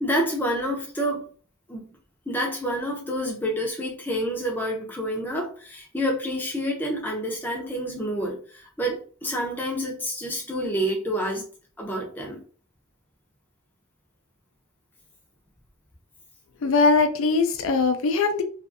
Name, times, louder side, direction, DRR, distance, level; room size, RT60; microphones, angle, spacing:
voice 1, 0.0-1.3 1.7-1.8 2.3-8.4 8.8-11.4 11.8-12.4, equal, 10° left, -1 dB, 0.5 m, -28 dB
voice 2, 16.6-18.4, left 4 dB, 70° left, 7 dB, 0.4 m, -21 dB
2.5 x 2.3 x 2.6 m, 0.42 s
head